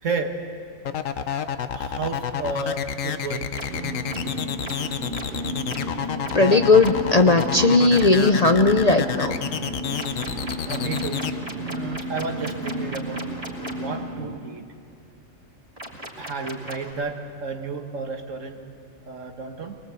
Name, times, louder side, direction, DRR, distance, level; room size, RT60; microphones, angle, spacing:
voice 1, 0.0-0.4 1.7-3.5 10.7-11.2 11.7-13.2 13.6-14.6 16.2-18.6 19.1-19.8, right 4 dB, 70° right, 5 dB, 1.9 m, -31 dB
sound 1, 0.9-11.3, left 8 dB, 75° left, 1.2 m, -29 dB
sound 2, 3.5-3.7 4.1-4.2 4.6-4.7 5.1-5.2 5.7-5.8 6.2-6.3 6.8-6.9 7.4-7.5 7.9-8.0 9.9-13.7 15.8-16.9, equal, 25° right, 3.2 m, -36 dB
sound 3, 3.7-14.4, right 1 dB, 45° right, 1.1 m, -33 dB
voice 2, 6.3-9.3, left 3 dB, 40° left, 7 dB, 0.6 m, -17 dB
23.0 x 21.5 x 8.3 m, 2.4 s
omnidirectional pair, 1.3 m